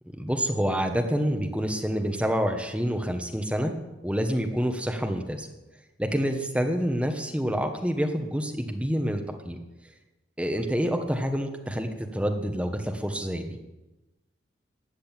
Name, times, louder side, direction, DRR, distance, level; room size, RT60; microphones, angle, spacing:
voice 1, 0.2-3.7 4.0-5.5 6.0-9.6 10.4-13.6, equal, 5° right, 4 dB, 1.2 m, -27 dB
14.0 x 8.0 x 9.0 m, 1.0 s
head